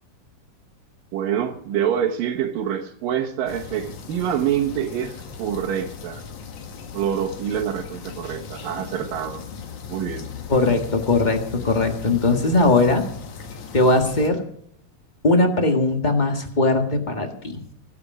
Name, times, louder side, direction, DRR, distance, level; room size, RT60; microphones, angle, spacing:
voice 1, 1.1-6.2 6.9-9.4 9.9-10.3, right 9 dB, 85° right, -3 dB, 3.0 m, -26 dB
sound 1, 3.5-14.3, left 7 dB, 65° left, 3.0 m, -38 dB
voice 2, 10.5-13.0 13.7-14.4 15.2-17.6, left 2 dB, 40° left, 4 dB, 0.6 m, -19 dB
25.0 x 8.7 x 4.9 m, 0.67 s
omnidirectional pair, 3.9 m